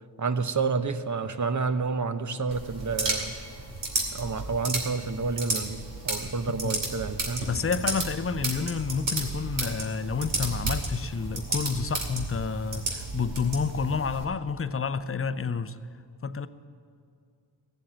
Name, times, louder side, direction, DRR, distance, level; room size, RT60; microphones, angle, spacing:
voice 1, 0.2-3.4 4.1-7.5, right 4 dB, 45° right, 10 dB, 0.9 m, -29 dB
sound 1, 2.5-14.2, right 2 dB, 85° right, 2.6 m, -33 dB
voice 2, 7.5-15.8 16.2-16.5, left 5 dB, 30° left, 13 dB, 0.6 m, -29 dB
16.5 x 7.7 x 8.7 m, 2.4 s
cardioid pair, 55°, 43 cm